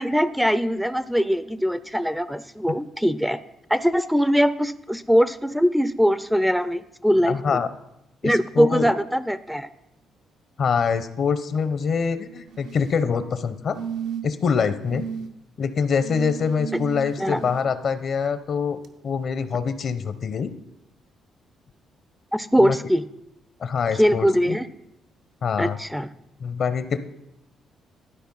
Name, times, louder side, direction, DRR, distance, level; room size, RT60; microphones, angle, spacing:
voice 1, 0.0-3.4 3.7-7.6 8.2-9.7 17.2-17.4 22.3-23.0 23.9-24.7 25.6-26.1, equal, ahead, 14 dB, 0.4 m, -21 dB
voice 2, 7.3-7.7 8.2-8.9 10.6-13.8 14.2-15.0 15.6-20.5 22.6-22.8 23.6-24.6 25.4-25.8 26.4-27.0, left 6 dB, 55° left, 12 dB, 0.7 m, -25 dB
sound 1, 12.5-13.0 13.7-14.4 14.9-15.3 16.0-17.6 18.8-18.9, right 7 dB, 80° right, 0.7 m, -34 dB
12.0 x 4.2 x 5.4 m, 0.82 s
cardioid pair, 90°, 0 cm